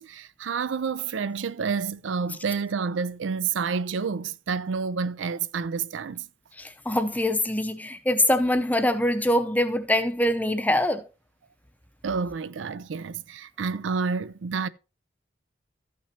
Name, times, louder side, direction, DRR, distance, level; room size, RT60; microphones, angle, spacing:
voice 1, 0.0-6.3 12.0-14.7, right 5 dB, 85° right, 0.4 m, -29 dB
voice 2, 6.6-11.1, left 1 dB, 10° left, 0.6 m, -24 dB
14.0 x 6.0 x 2.7 m
head